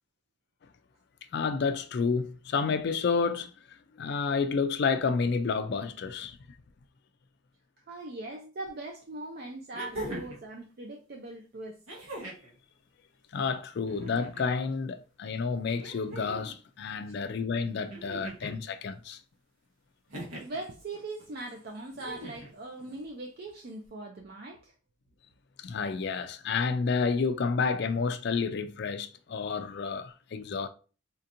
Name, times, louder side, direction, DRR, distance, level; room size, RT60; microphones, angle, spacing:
voice 1, 1.3-3.5 4.0-6.4 13.3-19.2 25.6-30.7, left 5 dB, 50° left, 0.3 m, -30 dB
voice 2, 7.9-11.8 17.0-17.1 20.4-24.7, right 2 dB, 45° right, 0.4 m, -40 dB
sound 1, 8.7-8.8 9.7-10.4 11.9-12.5 13.8-14.5 15.7-16.5 17.9-18.6 20.1-20.6 21.9-22.5 23.8-23.9, right 1 dB, 80° right, 1.2 m, -41 dB
4.3 x 2.8 x 2.5 m
head